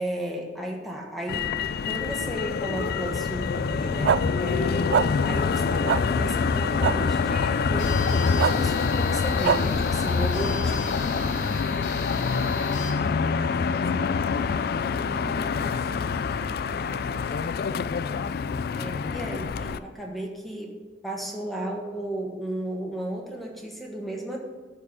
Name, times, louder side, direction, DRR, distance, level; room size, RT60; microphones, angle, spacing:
voice 1, 0.0-1.6 1.9-10.9 18.7-24.4, right 1 dB, ahead, -1 dB, 1.4 m, -34 dB
Motor vehicle (road), 1.3-19.8, left 5 dB, 60° left, 0.4 m, -26 dB
sound 1, 4.0-4.2 4.9-5.1 5.9-6.0 6.8-6.9 8.4-8.5 9.4-9.6, right 7 dB, 65° right, 0.3 m, -21 dB
sound 2, 7.8-12.9, left 2 dB, 85° left, 2.7 m, -39 dB
voice 2, 10.7-17.1, right 1 dB, 35° right, 1 dB, 1.1 m, -42 dB
12.0 x 4.5 x 7.0 m, 1.3 s
head